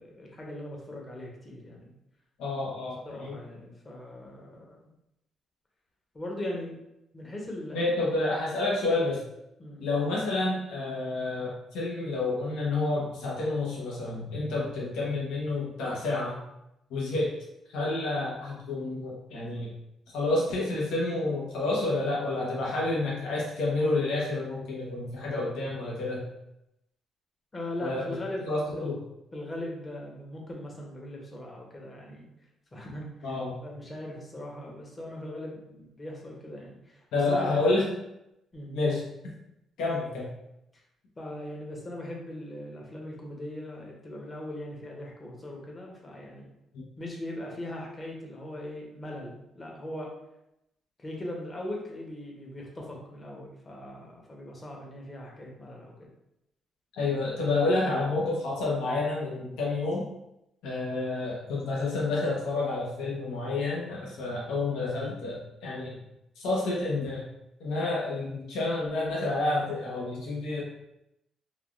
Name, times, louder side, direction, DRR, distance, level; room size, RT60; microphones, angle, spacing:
voice 1, 0.0-1.9 3.0-4.8 6.1-6.8 7.1-8.3 9.6-9.9 27.5-28.9 29.3-32.3 32.7-33.3 33.6-37.6 38.5-38.8 41.2-46.5 47.0-50.1 51.0-56.1, left 1 dB, 30° left, -1 dB, 0.8 m, -40 dB
voice 2, 2.4-3.4 7.7-9.2 9.8-16.4 16.9-17.3 17.7-19.7 20.1-26.2 27.8-28.0 28.4-29.0 33.2-33.6 37.1-37.9 38.7-39.0 39.8-40.3 46.7-46.8 56.9-60.0 60.6-66.0 66.4-67.3 67.6-70.6, left 2 dB, 85° left, -4 dB, 0.8 m, -29 dB
3.3 x 2.3 x 2.4 m, 0.86 s
cardioid pair, 90°, 0 cm